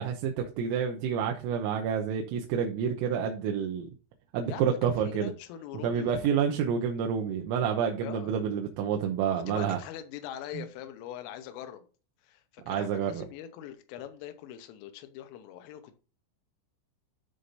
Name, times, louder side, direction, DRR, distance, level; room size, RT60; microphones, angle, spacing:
voice 1, 0.0-3.9 4.3-5.3 5.8-9.8 10.6-10.7 12.7-13.2, right 7 dB, 90° right, 2 dB, 3.7 m, -29 dB
voice 2, 4.5-6.2 6.6-6.7 8.0-8.3 9.3-11.9 12.2-16.0, left 11 dB, 80° left, 9 dB, 3.5 m, -42 dB
12.5 x 6.6 x 2.7 m, 0.34 s
omnidirectional pair, 5.8 m